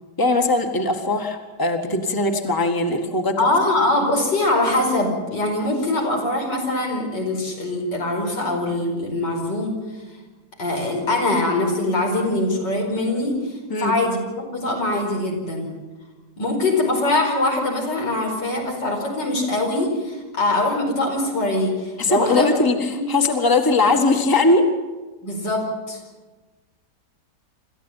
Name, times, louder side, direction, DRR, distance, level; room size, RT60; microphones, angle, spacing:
voice 1, 0.2-3.5 13.7-13.9 22.0-24.7, left 2 dB, 10° left, 5 dB, 1.7 m, -20 dB
voice 2, 3.4-9.8 10.6-15.7 16.4-22.5 22.9-23.1 25.2-26.0, left 2 dB, 90° left, 1 dB, 5.6 m, -23 dB
27.0 x 14.0 x 9.3 m, 1.2 s
omnidirectional pair, 1.8 m